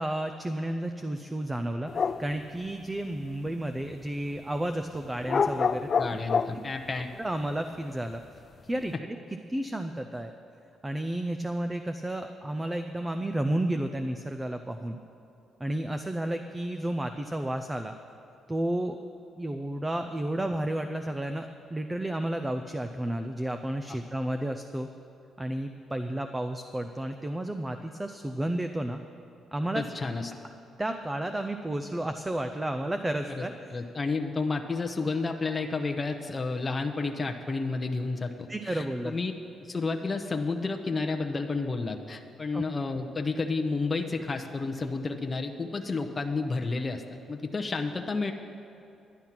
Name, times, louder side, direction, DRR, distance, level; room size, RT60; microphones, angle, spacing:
voice 1, 0.0-6.2 6.5-6.6 7.2-8.2 8.6-9.2 9.5-10.3 10.8-15.0 15.6-18.0 18.5-19.0 19.4-24.9 25.4-29.0 29.5-29.8 30.8-33.7 38.5-39.1 42.5-42.6, right 1 dB, 15° right, 7 dB, 0.5 m, -32 dB
sound 1, 1.9-2.3 2.6-2.7 5.0-6.6, left 5 dB, 45° left, 0.3 m, -27 dB
voice 2, 6.0-7.1 23.9-24.0 29.7-30.3 33.4-33.5 33.7-39.3 39.6-47.0 47.3-48.3, left 3 dB, 25° left, 3 dB, 0.8 m, -31 dB
11.0 x 10.5 x 5.9 m, 2.8 s
cardioid pair, 90°, 0 cm